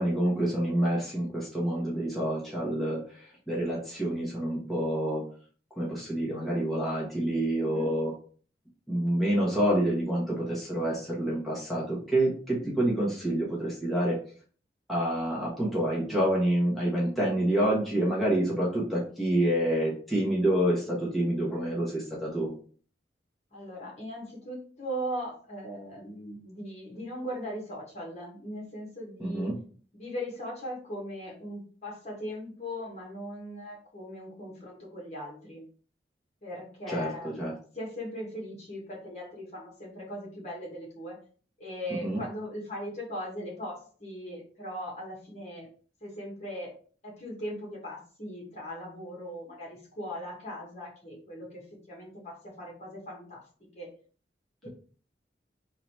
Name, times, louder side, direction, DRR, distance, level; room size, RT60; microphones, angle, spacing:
voice 1, 0.0-5.2 5.8-8.1 8.9-14.2 14.9-22.5 29.2-29.5 36.9-37.5 42.0-42.2, right 1 dB, ahead, -7 dB, 1.2 m, -28 dB
voice 2, 7.6-7.9 23.5-29.5 29.9-35.6 36.4-41.2 41.6-45.7 46.0-46.7 47.0-53.4 53.7-53.9 54.6-54.7, equal, 40° left, -3 dB, 1.8 m, -39 dB
3.9 x 2.9 x 4.5 m, 0.43 s
head